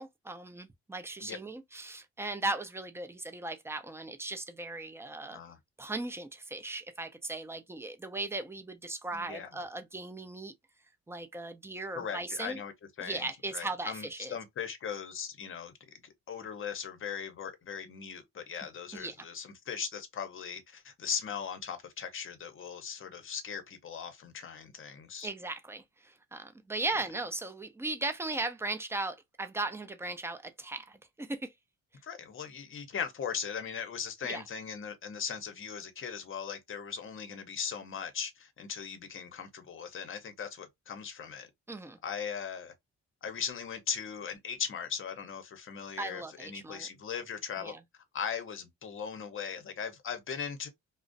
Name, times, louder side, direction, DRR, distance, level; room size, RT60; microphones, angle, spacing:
voice 1, 0.0-5.4 5.8-10.5 11.1-12.6 13.0-14.4 18.9-19.1 25.2-31.5 34.3-34.4 41.7-42.0 46.0-46.9 47.6-47.8, right 2 dB, 10° right, 0.4 m, -37 dB
voice 2, 5.3-5.6 9.1-9.5 11.9-12.7 13.0-15.7 16.0-25.3 32.0-41.5 42.0-42.7 43.2-47.7 48.1-50.7, left 7 dB, 45° left, 0.7 m, -39 dB
2.4 x 2.0 x 2.5 m
cardioid pair, 90°, 30 cm